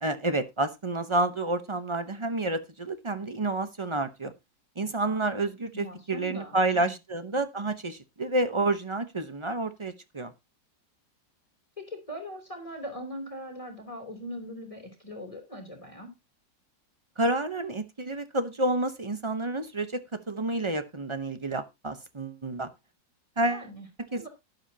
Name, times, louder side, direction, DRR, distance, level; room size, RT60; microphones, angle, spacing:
voice 1, 0.0-4.3 4.8-10.3 17.2-20.0 20.3-22.7 23.4-23.7 24.1-24.3, right 2 dB, 35° right, 10 dB, 0.4 m, -29 dB
voice 2, 5.7-6.9 11.8-16.1 23.5-24.3, equal, 15° left, 2 dB, 3.1 m, -41 dB
12.0 x 11.0 x 2.8 m, 0.24 s
omnidirectional pair, 2.0 m